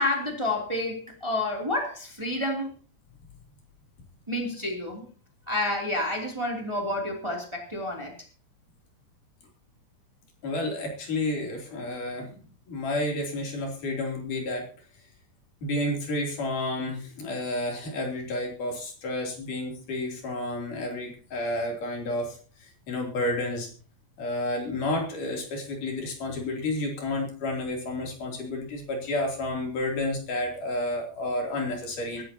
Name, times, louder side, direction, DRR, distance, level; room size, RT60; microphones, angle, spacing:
voice 1, 0.0-2.7 4.3-5.1 5.5-8.1, left 1 dB, 10° right, 1 dB, 2.6 m, -29 dB
voice 2, 10.4-12.3 12.7-14.7 15.6-23.7 24.2-32.2, left 1 dB, 80° left, 1 dB, 4.8 m, -30 dB
23.5 x 12.5 x 2.9 m, 0.40 s
omnidirectional pair, 3.6 m